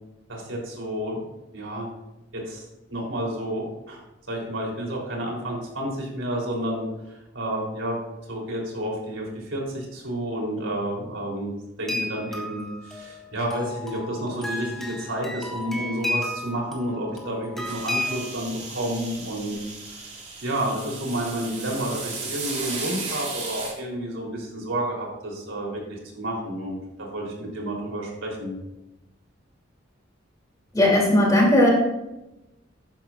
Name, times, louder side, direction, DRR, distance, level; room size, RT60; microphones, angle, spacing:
voice 1, 0.3-1.3 1.5-1.9 2.3-2.6 2.9-4.0 4.3-8.0 8.3-19.6 19.9-20.1 20.4-28.6, right 1 dB, 80° right, -2 dB, 3.5 m, -30 dB
sound 1, 11.9-18.4, left 1 dB, ahead, 1.8 m, -33 dB
sound 2, 17.6-23.7, right 4 dB, 35° right, 2.6 m, -35 dB
voice 2, 30.7-31.7, left 1 dB, 20° left, -3 dB, 2.9 m, -17 dB
13.5 x 10.5 x 2.5 m, 0.96 s
head